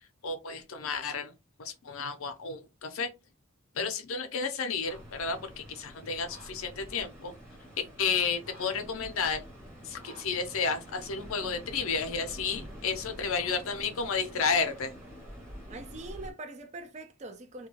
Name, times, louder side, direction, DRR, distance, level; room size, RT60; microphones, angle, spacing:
voice 1, 0.2-1.3 1.6-3.1 3.8-7.3 8.0-9.4 9.8-14.9, left 5 dB, 70° left, 0.6 m, -32 dB
sound 1, 4.9-16.3, equal, 10° right, 0.8 m, -47 dB
voice 2, 15.7-17.7, right 2 dB, 30° right, 0.4 m, -43 dB
2.3 x 2.2 x 3.0 m
head